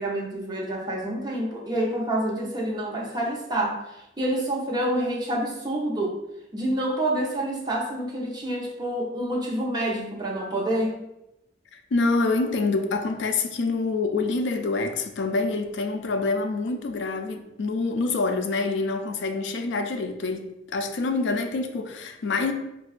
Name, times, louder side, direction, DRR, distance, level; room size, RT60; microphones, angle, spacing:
voice 1, 0.0-6.2 6.5-11.0, right 1 dB, 25° right, 0.6 m, -28 dB
voice 2, 11.7-22.5, left 3 dB, 85° left, 0.4 m, -26 dB
4.5 x 2.2 x 2.4 m
head